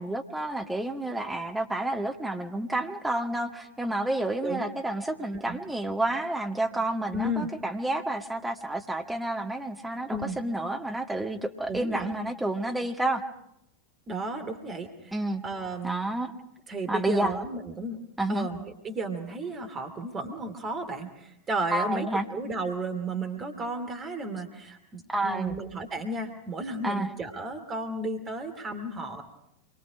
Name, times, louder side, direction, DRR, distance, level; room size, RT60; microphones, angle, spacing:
voice 1, 0.0-13.2 15.1-15.4 15.8-16.3 16.9-17.4 18.2-18.5 21.7-22.3 25.1-25.6 26.8-27.1, right 1 dB, 5° right, 4 dB, 1.9 m, -30 dB
voice 2, 7.1-7.5 10.1-10.4 11.7-12.1 14.1-15.1 15.4-16.1 16.7-18.0 18.3-22.1 22.3-29.2, right 2 dB, 25° right, 5 dB, 2.7 m, -33 dB
27.0 x 23.0 x 5.1 m, 0.78 s
figure-of-eight pair, 90°, 0 cm